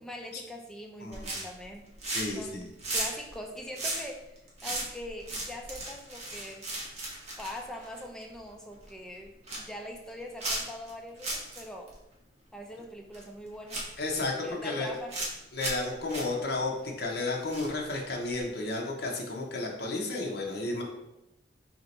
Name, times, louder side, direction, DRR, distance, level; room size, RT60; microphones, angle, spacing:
voice 1, 0.0-1.9 2.2-2.6 2.9-6.7 7.4-11.9 12.5-13.8 14.3-15.2, left 1 dB, 5° left, 1 dB, 0.4 m, -42 dB
voice 2, 1.0-1.3 2.1-2.7 14.0-14.9 15.5-20.8, left 2 dB, 60° left, -1 dB, 0.7 m, -32 dB
sound 1, 1.1-1.6 1.9-2.4 2.7-8.3 8.7-8.9 9.2-9.7 10.4-10.9 11.2-11.6 11.9-12.0 13.1-13.2 13.7-14.3 14.8-15.3 15.6-15.8 16.1-16.2 17.5-17.9 18.3-18.4, right 2 dB, 35° right, 0.9 m, -35 dB
3.3 x 2.8 x 4.0 m, 0.93 s
head